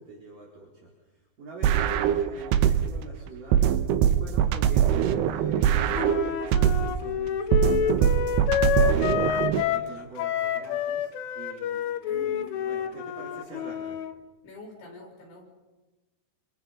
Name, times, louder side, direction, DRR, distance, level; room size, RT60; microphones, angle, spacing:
voice 1, 0.0-8.2 8.7-14.0, right 2 dB, 45° right, -2 dB, 5.0 m, -45 dB
sound 1, 1.6-3.0 3.5-7.0 7.5-9.6, right 9 dB, 70° right, 2.7 m, -22 dB
Wind instrument woodwind instrument, 5.9-9.9 10.2-14.1, left 9 dB, 80° left, 3.6 m, -28 dB
voice 2, 12.0-12.6 14.4-15.4, equal, 55° left, -1 dB, 8.3 m, -45 dB
29.0 x 27.5 x 5.7 m, 1.1 s
omnidirectional pair, 5.7 m